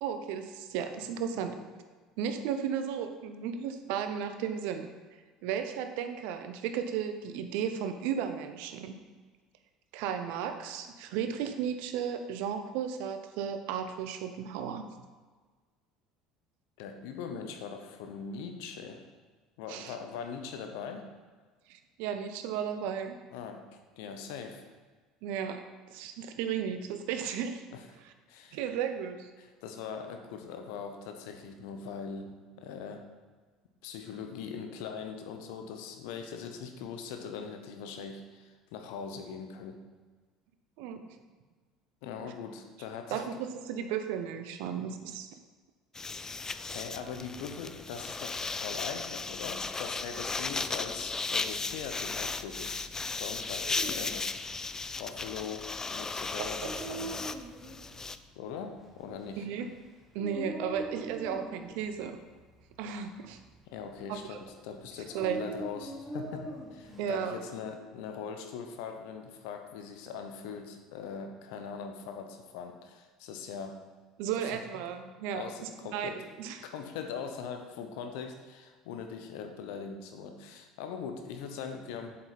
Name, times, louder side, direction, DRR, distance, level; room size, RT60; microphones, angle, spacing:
voice 1, 0.0-1.6 2.2-4.9 5.4-8.9 9.9-14.8 19.7-19.9 21.7-23.2 25.2-25.6 25.9-27.6 28.5-29.3 40.8-41.1 42.2-42.3 43.1-45.3 56.4-57.0 59.4-59.7 60.1-62.2 62.8-63.4 64.1-64.4 65.1-65.5 67.0-67.4 74.2-76.6, right 8 dB, 60° right, 8 dB, 0.8 m, -34 dB
voice 2, 16.8-19.0 19.6-21.1 23.3-23.7 24.0-24.6 27.7-27.8 28.3-28.6 29.4-33.1 33.8-39.8 42.0-43.2 46.4-52.9 53.2-54.7 55.0-57.1 58.3-59.5 63.7-73.9 75.3-76.2 76.6-82.2, left 6 dB, 65° left, 6 dB, 1.0 m, -41 dB
sound 1, 46.0-58.2, left 3 dB, 20° left, 0.4 m, -36 dB
Dog, 53.3-67.0, right 1 dB, 5° right, 2.7 m, -44 dB
8.0 x 7.6 x 4.2 m, 1.4 s
figure-of-eight pair, 65°, 3 cm